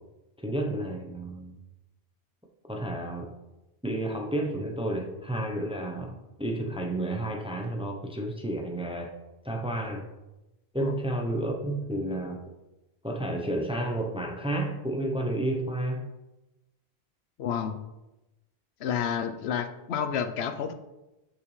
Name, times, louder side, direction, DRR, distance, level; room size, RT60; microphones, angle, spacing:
voice 1, 0.4-1.6 2.7-3.3 3.8-9.1 9.4-10.0 10.7-12.4 13.0-16.1, right 1 dB, 5° right, 2 dB, 0.6 m, -31 dB
voice 2, 17.4-17.8 18.8-20.7, left 8 dB, 85° left, 8 dB, 0.9 m, -30 dB
6.5 x 5.8 x 3.2 m, 0.99 s
omnidirectional pair, 1.1 m